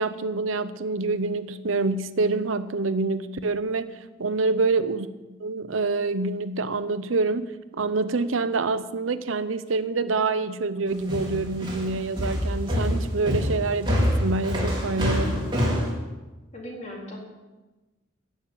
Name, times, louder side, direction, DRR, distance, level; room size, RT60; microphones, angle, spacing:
voice 1, 0.0-3.9 4.2-5.1 5.4-15.4, right 3 dB, 90° right, 12 dB, 0.7 m, -26 dB
sound 1, 11.1-15.9, equal, 25° right, 3.7 m, -25 dB
voice 2, 16.5-17.2, left 1 dB, 35° left, -2 dB, 3.8 m, -37 dB
14.5 x 6.4 x 9.2 m, 1.2 s
head